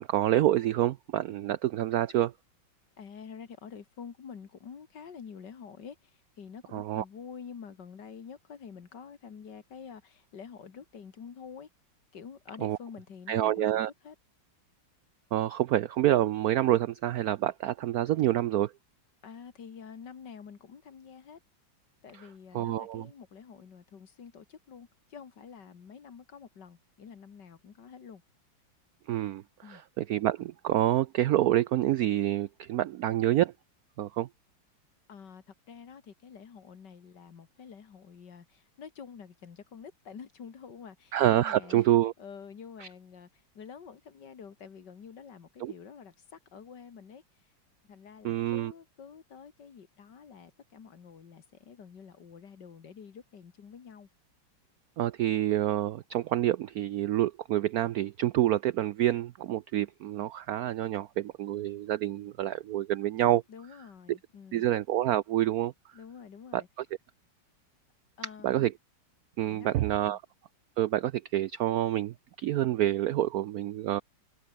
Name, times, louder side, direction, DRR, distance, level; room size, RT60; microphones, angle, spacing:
voice 1, 0.0-2.3 6.7-7.0 12.6-12.8 13.3-13.9 15.3-18.7 22.1-22.3 22.5-23.1 29.1-33.5 34.0-34.3 41.1-42.1 42.8-42.9 45.6-45.7 48.2-48.7 55.0-63.4 64.1-64.2 64.5-65.7 66.5-66.9 68.4-68.7 69.4-70.2 70.8-74.0, right 13 dB, 80° right, 0.8 m, -27 dB
voice 2, 3.0-6.0 6.4-11.7 12.1-13.8 14.0-14.1 19.2-21.4 22.0-28.2 29.6-29.8 35.1-43.3 43.5-47.2 47.9-54.1 63.5-64.6 65.9-66.7 68.2-68.7 69.5-70.2, left 6 dB, 60° left, 2.4 m, -48 dB
omnidirectional pair, 2.2 m